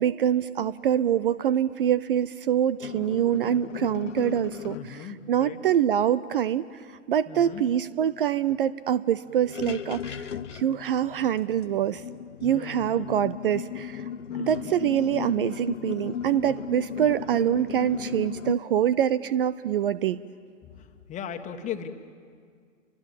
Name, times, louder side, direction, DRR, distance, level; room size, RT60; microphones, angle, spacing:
voice 1, 0.0-12.0 12.4-14.1 14.5-20.2, right 10 dB, 45° right, 17 dB, 0.6 m, -25 dB
sound 1, 2.8-4.9 7.5-7.6 7.9-8.1 8.5-8.6 9.3-18.5, left 8 dB, 65° left, 0.8 m, -36 dB
voice 2, 4.7-5.6 7.3-7.6 12.4-13.3 14.3-14.7 15.1-15.2 20.6-21.9, left 8 dB, 20° left, 7 dB, 1.5 m, -39 dB
30.0 x 24.5 x 7.3 m, 2.1 s
figure-of-eight pair, 115°, 39 cm